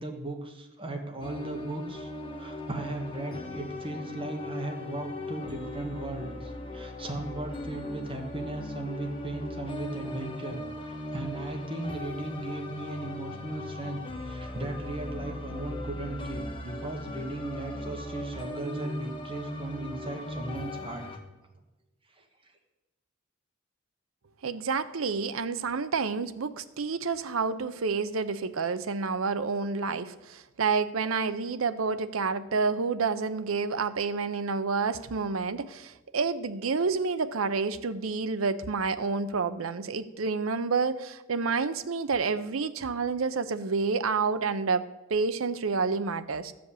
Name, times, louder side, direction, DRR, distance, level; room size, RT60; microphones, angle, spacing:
voice 1, 0.0-2.1 2.4-21.1 22.2-22.3, right 2 dB, 25° right, 3 dB, 1.4 m, -37 dB
sound 1, 1.2-21.2, left 1 dB, 25° left, 1.3 m, -39 dB
voice 2, 24.4-44.8 45.1-46.5, right 4 dB, 85° right, 12 dB, 0.7 m, -29 dB
13.5 x 5.2 x 8.3 m, 1.1 s
head